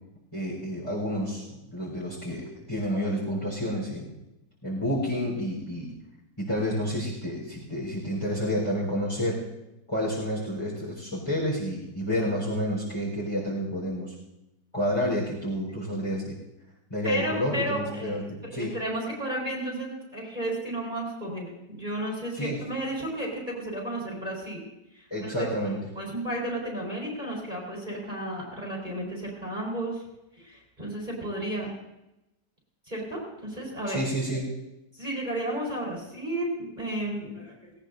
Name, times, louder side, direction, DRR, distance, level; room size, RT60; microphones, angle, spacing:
voice 1, 0.3-1.4 1.7-4.1 4.6-5.9 6.4-9.4 9.9-14.1 14.7-16.3 16.9-18.7 22.3-22.6 25.1-25.8 33.9-34.6, equal, 20° left, -6 dB, 4.2 m, -29 dB
voice 2, 17.0-24.6 24.9-25.5 25.9-30.0 30.4-31.7 32.9-34.0 34.9-37.7, right 1 dB, 30° right, -4 dB, 4.4 m, -33 dB
18.5 x 18.5 x 2.7 m, 0.92 s
omnidirectional pair, 1.6 m